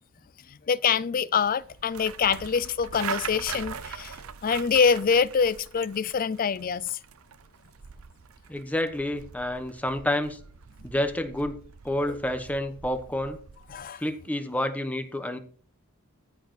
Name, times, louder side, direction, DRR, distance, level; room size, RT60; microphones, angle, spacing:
voice 1, 0.5-7.0 12.1-12.2 13.7-14.0, left 6 dB, 40° left, 0.4 m, -25 dB
sound 1, 1.6-13.9, right 7 dB, 75° right, 0.6 m, -42 dB
voice 2, 8.5-10.4 10.8-11.6 11.8-13.4 14.0-15.4, left 1 dB, 5° left, 1.0 m, -29 dB
14.0 x 4.8 x 6.0 m
head